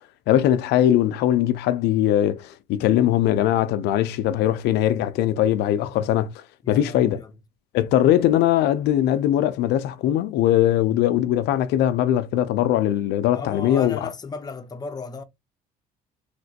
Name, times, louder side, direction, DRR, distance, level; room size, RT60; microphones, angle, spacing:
voice 1, 0.3-6.3 6.7-7.2 7.7-14.1, left 12 dB, 80° left, 0.5 m, -20 dB
voice 2, 6.6-7.3 13.3-15.2, left 4 dB, 25° left, 0.7 m, -34 dB
3.2 x 2.9 x 2.7 m
cardioid pair, 110°, 17 cm